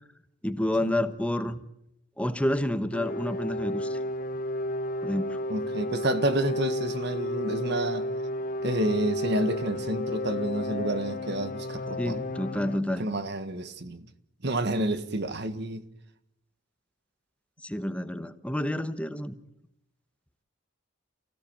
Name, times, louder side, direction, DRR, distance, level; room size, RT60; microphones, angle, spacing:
voice 1, 0.4-1.6 2.2-4.0 5.0-5.4 12.0-13.1 17.6-19.3, left 1 dB, 5° left, 1.1 m, -29 dB
sound 1, 2.9-12.8, left 1 dB, 45° left, 1.0 m, -32 dB
voice 2, 5.5-8.1 8.6-12.2 13.0-14.1 14.4-15.8, right 1 dB, 55° right, 1.7 m, -29 dB
29.0 x 16.0 x 8.9 m
head